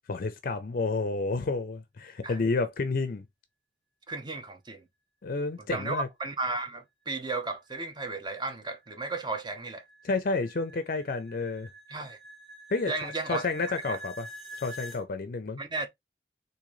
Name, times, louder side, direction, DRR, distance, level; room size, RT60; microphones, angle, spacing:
voice 1, 0.1-3.2 5.2-6.1 10.0-11.7 12.7-14.3 14.6-15.6, left 3 dB, 50° left, 0.5 m, -30 dB
voice 2, 4.1-4.8 5.6-9.8 11.9-12.2 12.9-13.5 13.9-14.0 15.6-15.9, right 3 dB, 25° right, 0.7 m, -34 dB
sound 1, 8.8-15.0, right 1 dB, 5° left, 1.3 m, -46 dB
3.8 x 2.6 x 3.0 m
head